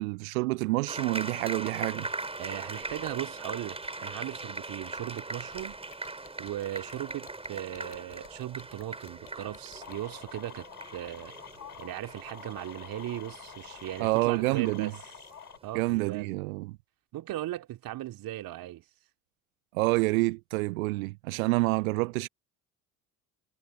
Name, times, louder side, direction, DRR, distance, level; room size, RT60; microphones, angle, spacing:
voice 1, 0.0-2.1 14.0-14.9 15.7-16.8 19.7-22.3, right 23 dB, 65° right, 0.7 m, -28 dB
sound 1, 0.9-15.8, right 2 dB, 15° right, 5.0 m, -41 dB
voice 2, 2.4-5.8 6.4-10.7 10.9-11.3 11.8-14.9 15.6-16.3 17.1-18.8, right 14 dB, 50° right, 2.8 m, -38 dB
sound 2, 5.0-10.0, left 16 dB, 55° left, 3.5 m, -54 dB
sound 3, 9.7-15.6, left 7 dB, 85° left, 7.0 m, -47 dB
figure-of-eight pair, 60°, 44 cm